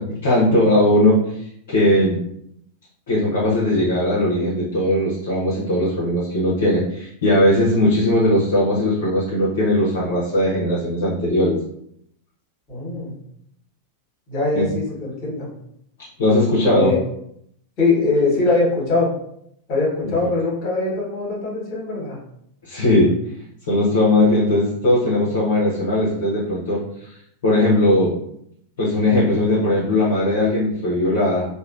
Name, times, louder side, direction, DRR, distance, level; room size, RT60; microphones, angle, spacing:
voice 1, 0.2-1.2 1.7-2.2 3.1-11.6 14.6-14.7 16.2-16.9 22.6-23.1 23.7-26.8 27.4-28.1 28.8-31.5, left 1 dB, 55° left, -6 dB, 0.8 m, -18 dB
voice 2, 12.7-13.1 14.3-15.5 16.7-17.0 17.8-19.1 19.7-22.2, left 3 dB, 40° left, -4 dB, 1.4 m, -21 dB
3.1 x 2.3 x 2.4 m, 0.71 s
figure-of-eight pair, 90°, 0 cm